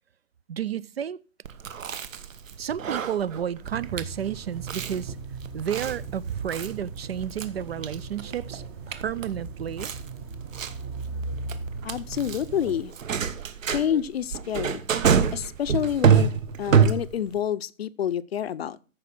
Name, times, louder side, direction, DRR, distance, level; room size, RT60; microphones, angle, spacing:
voice 1, 0.5-1.2 2.6-5.2 5.5-9.9, right 9 dB, 50° right, 0.4 m, -31 dB
Chewing mastication, 1.5-17.4, right 7 dB, 70° right, 1.4 m, -27 dB
sound 1, 3.6-12.8, right 4 dB, 20° right, 0.7 m, -38 dB
voice 2, 11.8-12.9 13.7-14.9 15.3-16.3 16.6-18.8, left 9 dB, 50° left, 0.6 m, -28 dB
14.0 x 5.3 x 6.0 m
hypercardioid pair, 160°, 41 cm